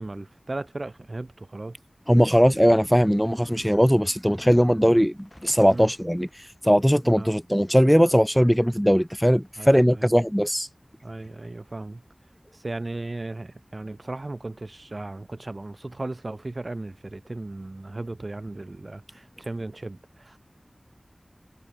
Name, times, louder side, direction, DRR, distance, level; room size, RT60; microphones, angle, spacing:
voice 1, 0.0-1.8 5.7-5.9 7.2-7.3 9.6-10.1 11.0-12.0 12.5-20.4, right 2 dB, 60° right, 1.7 m, -36 dB
voice 2, 2.1-10.7, equal, ahead, 0.3 m, -20 dB
sound 1, 5.1-8.2 8.7-9.8 10.8-10.9, left 1 dB, 40° left, 2.3 m, -53 dB
wide cardioid pair, 45°, 0 cm